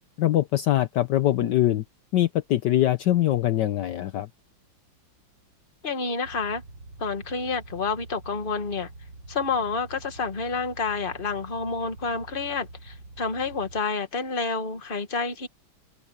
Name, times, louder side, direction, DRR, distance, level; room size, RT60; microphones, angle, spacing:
voice 1, 0.2-1.8 2.1-4.3, left 13 dB, 70° left, 1.3 m, -23 dB
voice 2, 5.8-6.6 7.0-8.9 9.3-15.5, left 4 dB, 30° left, 1.7 m, -29 dB
sound 1, 6.2-13.8, right 2 dB, 75° right, 5.6 m, -45 dB
open air
omnidirectional pair, 2.1 m